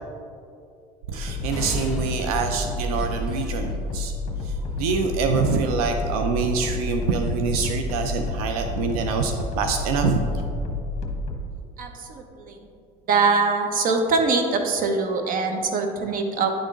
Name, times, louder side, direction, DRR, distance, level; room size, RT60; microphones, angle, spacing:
voice 1, 1.1-4.1 4.4-10.4, right 5 dB, 90° right, 5 dB, 0.5 m, -25 dB
sound 1, 1.2-11.4, left 2 dB, 35° left, 1.0 m, -30 dB
sound 2, 1.5-3.7, equal, 5° right, 1.0 m, -38 dB
voice 2, 11.8-12.6 13.1-16.5, right 4 dB, 50° right, 4 dB, 1.0 m, -23 dB
10.0 x 3.8 x 3.7 m, 2.5 s
supercardioid pair, 100°, 18 cm